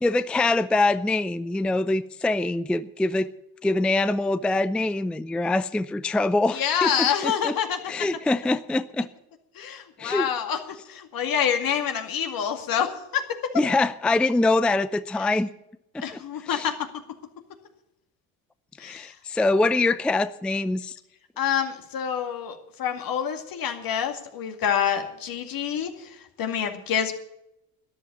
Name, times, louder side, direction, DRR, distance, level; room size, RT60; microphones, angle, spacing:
voice 1, 0.0-3.3 3.6-7.5 7.9-9.1 10.0-10.3 13.5-15.5 15.9-16.0 16.4-16.7 18.8-21.0, left 2 dB, ahead, 15 dB, 0.4 m, -24 dB
voice 2, 6.5-7.8 9.6-10.6 10.9-13.3 16.0-16.9 18.8-19.1 21.4-26.1 26.4-27.1, left 8 dB, 50° left, 6 dB, 2.3 m, -27 dB
13.0 x 10.5 x 7.1 m, 0.84 s
hypercardioid pair, 65°, 43 cm